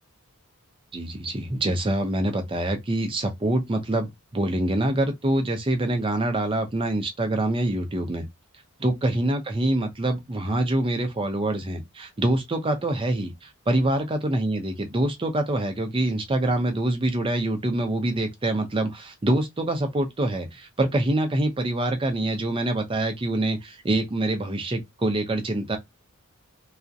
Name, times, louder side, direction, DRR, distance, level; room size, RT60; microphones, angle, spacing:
voice 1, 0.9-8.3 8.8-25.8, right 1 dB, 25° right, 0.5 m, -25 dB
2.3 x 2.0 x 2.6 m
head